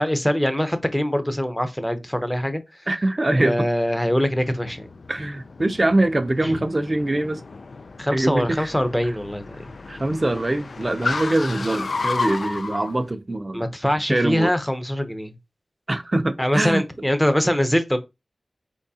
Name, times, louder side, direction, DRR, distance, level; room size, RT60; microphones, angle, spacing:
voice 1, 0.0-2.6 3.4-4.9 6.4-6.6 8.0-9.6 13.5-15.3 16.4-18.0, equal, 5° left, 0.7 m, -23 dB
voice 2, 2.9-3.6 5.1-7.4 8.1-8.7 9.9-13.6 14.1-14.5 15.9-16.8, right 1 dB, 35° right, 0.5 m, -23 dB
Car, 4.0-12.9, left 3 dB, 70° left, 0.3 m, -33 dB
4.6 x 3.5 x 2.7 m
wide cardioid pair, 80°, 0 cm